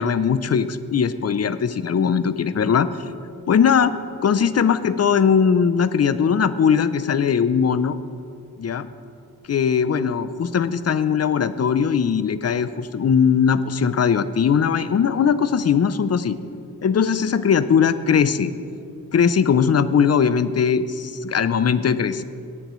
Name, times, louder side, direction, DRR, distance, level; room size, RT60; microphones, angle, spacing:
voice 1, 0.0-2.9 3.5-4.0 4.2-8.0 8.6-8.9 9.5-16.4 16.8-18.5 19.1-22.2, left 7 dB, 45° left, 13 dB, 0.5 m, -19 dB
17.5 x 10.5 x 3.1 m, 2.5 s
wide cardioid pair, 110°, 38 cm